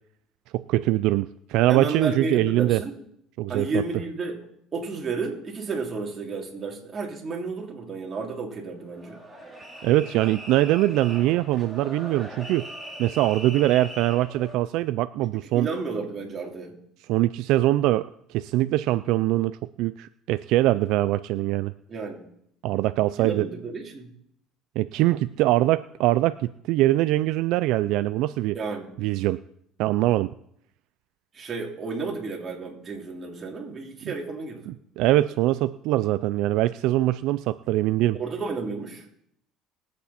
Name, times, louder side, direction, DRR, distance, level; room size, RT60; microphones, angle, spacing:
voice 1, 0.5-2.8 3.4-3.8 9.8-12.7 13.0-15.7 17.1-21.7 22.6-23.5 24.8-28.6 29.0-29.4 29.8-30.3 34.7-38.2, right 16 dB, 75° right, 14 dB, 0.4 m, -23 dB
voice 2, 1.7-3.0 3.5-4.4 4.7-9.2 15.5-16.7 21.9-22.3 23.2-24.1 28.5-28.9 31.3-34.7 38.1-39.0, right 4 dB, 30° right, -1 dB, 3.2 m, -32 dB
sound 1, 8.9-14.6, right 1 dB, 5° right, 3.2 m, -40 dB
21.0 x 8.3 x 4.2 m, 0.72 s
cardioid pair, 125°, 0 cm